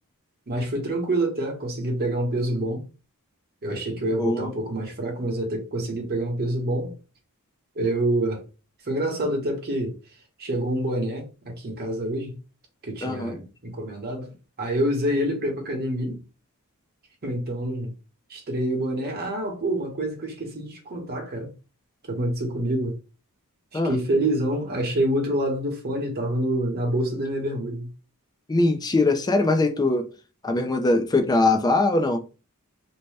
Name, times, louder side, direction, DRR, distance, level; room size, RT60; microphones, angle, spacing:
voice 1, 0.5-2.9 3.6-6.9 7.7-8.4 8.8-10.0 10.4-12.4 12.8-16.2 17.2-17.9 18.3-21.5 22.0-23.0 23.7-27.9, right 1 dB, 45° right, 0.9 m, -27 dB
voice 2, 4.2-4.5 13.0-13.4 23.7-24.0 28.5-30.1 30.4-32.2, left 2 dB, 20° left, 0.4 m, -22 dB
2.7 x 2.1 x 3.2 m
head